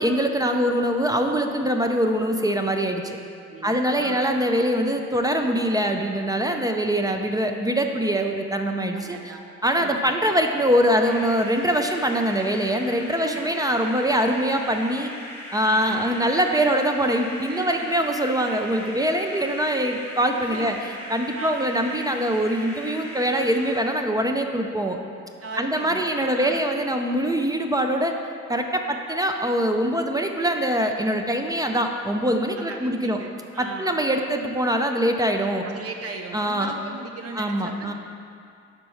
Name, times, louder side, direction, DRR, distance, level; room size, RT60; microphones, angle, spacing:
voice 1, 0.0-3.0 3.6-9.3 9.6-15.1 15.5-20.7 21.1-25.0 25.6-28.1 28.5-33.2 33.6-35.7 36.3-36.7 37.4-37.9, equal, 15° right, 4 dB, 0.4 m, -23 dB
voice 2, 3.4-4.2 9.0-10.3 13.1-13.7 15.6-16.2 17.5-17.9 20.4-20.8 21.3-21.5 25.4-26.7 32.7-34.0 35.6-37.9, right 4 dB, 50° right, 3 dB, 0.8 m, -38 dB
sound 1, 11.0-23.9, left 1 dB, 10° left, 1.1 m, -39 dB
5.5 x 4.5 x 5.4 m, 2.4 s
cardioid pair, 90°, 30 cm